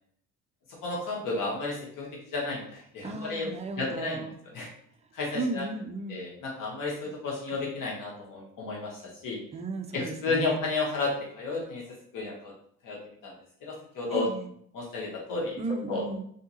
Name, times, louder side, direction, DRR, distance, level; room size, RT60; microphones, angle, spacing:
voice 1, 0.8-4.2 4.5-4.7 5.1-5.6 6.1-9.0 9.2-9.4 9.9-11.8 12.1-12.5 12.8-13.3 13.6-14.3 14.7-15.6 15.9-16.0, left 3 dB, 60° left, -3 dB, 1.1 m, -32 dB
voice 2, 3.0-4.4 5.3-6.3 7.5-7.6 9.5-10.6 14.1-14.5 15.6-16.3, right 3 dB, 20° right, 5 dB, 0.4 m, -35 dB
3.5 x 2.7 x 2.9 m, 0.65 s
cardioid pair, 105°, 37 cm